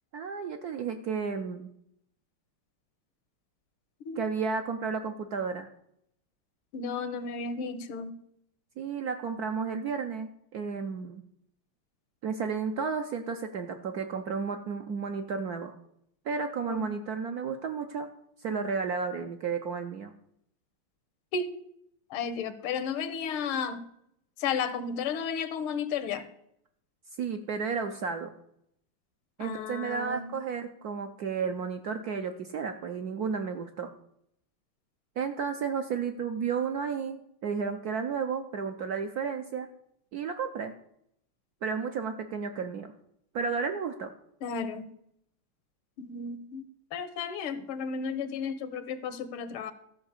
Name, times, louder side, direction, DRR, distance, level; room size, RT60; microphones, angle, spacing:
voice 1, 0.1-1.7 4.2-5.7 8.8-11.2 12.2-15.7 16.2-18.1 18.4-20.1 27.2-28.3 29.4-33.9 35.2-39.7 40.1-40.7 41.6-42.9 43.3-44.1, right 5 dB, 65° right, 6 dB, 0.9 m, -32 dB
voice 2, 6.7-8.2 16.7-16.9 21.3-21.5 22.1-23.8 24.4-26.3 29.4-30.3 44.4-44.9 46.0-46.6 46.9-49.7, left 6 dB, 80° left, 12 dB, 1.8 m, -33 dB
13.5 x 5.0 x 7.2 m, 0.73 s
omnidirectional pair, 2.3 m